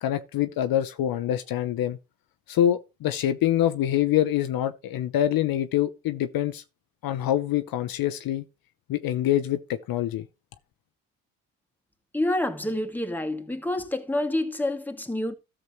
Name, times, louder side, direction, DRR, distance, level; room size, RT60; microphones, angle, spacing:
voice 1, 0.0-2.0 2.5-6.6 7.0-8.4 8.9-10.3, left 11 dB, 60° left, 0.8 m, -25 dB
voice 2, 12.1-15.3, left 1 dB, 5° left, 2.2 m, -28 dB
13.5 x 7.3 x 3.1 m
hypercardioid pair, 55°, 39 cm